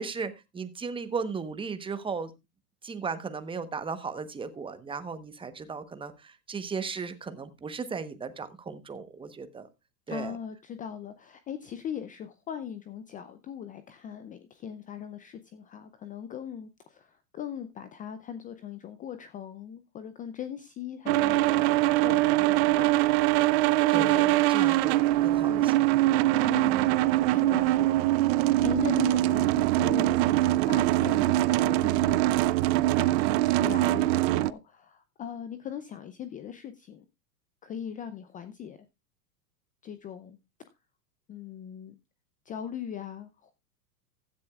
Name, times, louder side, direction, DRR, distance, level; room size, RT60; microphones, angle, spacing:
voice 1, 0.0-2.3 2.8-9.7 10.1-10.4 23.9-25.7, right 5 dB, 10° right, 1.0 m, -36 dB
voice 2, 10.1-23.3 23.9-24.7 25.5-25.8 26.4-32.5 33.0-37.1 37.6-38.8 39.8-40.4 41.3-41.9 42.5-43.5, left 9 dB, 20° left, 0.5 m, -40 dB
sound 1, 21.1-34.5, right 16 dB, 45° right, 0.5 m, -23 dB
15.5 x 10.5 x 2.4 m
hypercardioid pair, 120°, 48 cm